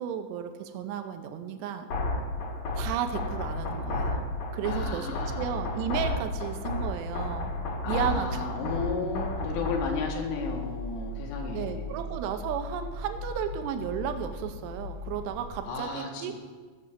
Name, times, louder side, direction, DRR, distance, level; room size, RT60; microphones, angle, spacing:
voice 1, 0.0-1.9 2.7-4.2 4.5-7.5 7.9-8.9 11.5-16.3, right 9 dB, 75° right, 7 dB, 2.8 m, -34 dB
sound 1, 1.9-9.9, left 2 dB, 60° left, 1.8 m, -32 dB
voice 2, 4.6-5.5 7.8-12.0 15.7-16.1, left 4 dB, 85° left, 0 dB, 4.5 m, -33 dB
sound 2, 9.5-15.7, left 3 dB, 45° right, 1.7 m, -38 dB
18.0 x 7.1 x 6.8 m, 1.5 s
omnidirectional pair, 5.6 m